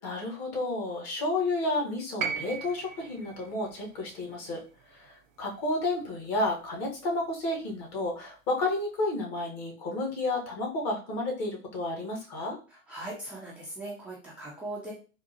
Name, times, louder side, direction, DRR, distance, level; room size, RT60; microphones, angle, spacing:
voice 1, 0.0-4.6 4.9-12.6, left 2 dB, 40° left, 0 dB, 1.3 m, -31 dB
sound 1, 2.2-6.4 7.6-7.7, right 6 dB, 75° right, 0.6 m, -39 dB
voice 2, 12.7-14.9, right 2 dB, 5° right, -6 dB, 0.3 m, -39 dB
3.6 x 2.4 x 2.7 m, 0.36 s
figure-of-eight pair, 95°, 40 cm